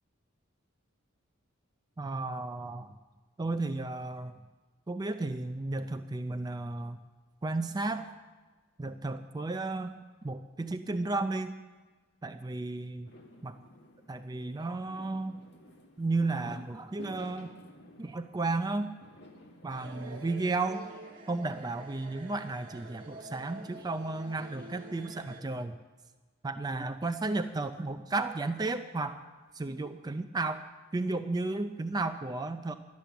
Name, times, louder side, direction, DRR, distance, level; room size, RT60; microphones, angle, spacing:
voice 1, 2.0-2.9 3.4-4.4 4.9-7.0 7.4-8.1 8.8-9.9 10.2-11.6 12.2-13.1 13.4-13.6 14.1-15.4 16.0-17.5 18.0-18.9 19.6-20.8 21.3-25.8 26.4-29.2 29.5-30.6 30.9-32.7, right 2 dB, 20° right, 8 dB, 0.4 m, -33 dB
Fireworks, 13.0-20.1, equal, 55° left, 1.7 m, -54 dB
sound 1, 19.7-25.4, right 2 dB, 40° right, 1.7 m, -48 dB
12.0 x 11.5 x 6.9 m, 1.3 s
head